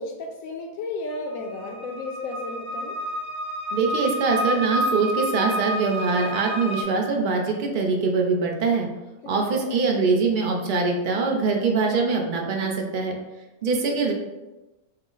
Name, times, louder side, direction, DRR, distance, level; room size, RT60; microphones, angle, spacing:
voice 1, 0.0-3.0 9.2-9.8 13.9-14.0, left 3 dB, 70° left, 3 dB, 0.9 m, -34 dB
sound 1, 1.1-6.8, equal, 55° right, 0.8 m, -29 dB
voice 2, 3.7-8.9 9.3-13.2 13.6-14.1, right 4 dB, 75° right, 1 dB, 0.4 m, -23 dB
5.4 x 2.0 x 3.8 m, 1.1 s
omnidirectional pair, 1.6 m